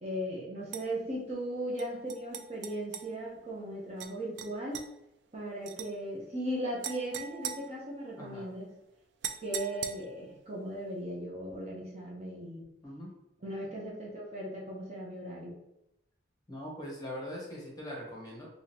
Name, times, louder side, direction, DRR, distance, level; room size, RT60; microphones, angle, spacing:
voice 1, 0.0-4.8 5.3-8.7 9.4-12.6 13.4-15.6, right 1 dB, 35° right, -4 dB, 0.8 m, -37 dB
sound 1, 0.7-0.9 1.8-3.1 4.0-4.1 4.4-4.9 5.7-5.9 6.8-8.3 9.2-10.3, right 8 dB, 70° right, 0.3 m, -40 dB
voice 2, 16.5-18.5, equal, 20° left, -3 dB, 1.0 m, -41 dB
3.7 x 2.9 x 2.9 m, 0.86 s
head